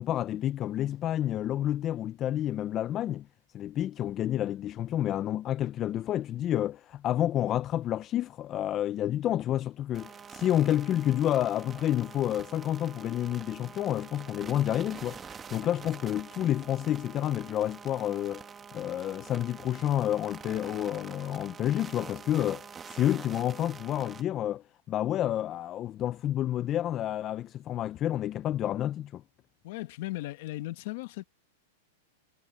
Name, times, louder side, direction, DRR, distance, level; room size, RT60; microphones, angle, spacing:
voice 1, 0.0-3.3 3.5-18.4 18.7-29.2, left 12 dB, 20° left, 0.3 m, -29 dB
sound 1, 9.9-24.2, right 6 dB, 15° right, 1.1 m, -46 dB
voice 2, 29.6-31.2, left 18 dB, 45° left, 1.2 m, -37 dB
supercardioid pair, 170°, 0 cm